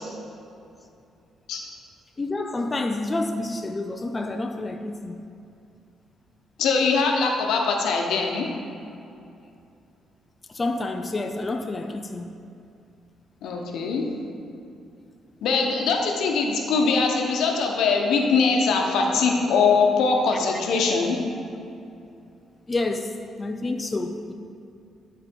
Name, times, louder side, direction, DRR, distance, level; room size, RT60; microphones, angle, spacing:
voice 1, 2.2-5.2 10.5-12.4 22.7-24.3, left 2 dB, 25° left, 5 dB, 0.4 m, -29 dB
voice 2, 6.6-8.5 13.4-14.0 15.4-21.2, left 4 dB, 80° left, 2 dB, 0.9 m, -22 dB
10.0 x 4.1 x 4.5 m, 2.6 s
cardioid pair, 90°, 0 cm